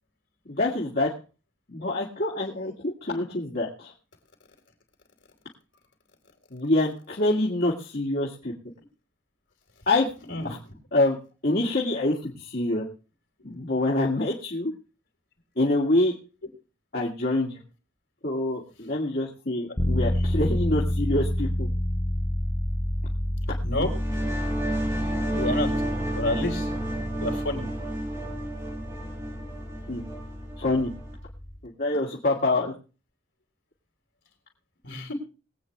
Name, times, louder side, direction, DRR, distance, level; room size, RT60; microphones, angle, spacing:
voice 1, 0.5-1.1 1.7-3.9 6.5-8.5 9.9-10.1 10.4-10.6 10.9-11.2 11.4-12.8 13.4-14.7 15.6-16.1 16.9-17.6 18.2-21.7 29.9-30.0 30.6-30.9 31.6-32.7, left 2 dB, 50° left, -4 dB, 2.5 m, -26 dB
sound 1, 19.8-31.6, left 1 dB, 15° left, 0.8 m, -29 dB
sound 2, 23.8-31.2, right 1 dB, 15° right, 6.0 m, -32 dB
voice 2, 25.3-25.7 26.1-26.7 27.2-27.7 34.8-35.1, left 1 dB, 65° left, 3 dB, 4.3 m, -28 dB
22.5 x 8.9 x 3.3 m, 0.34 s
head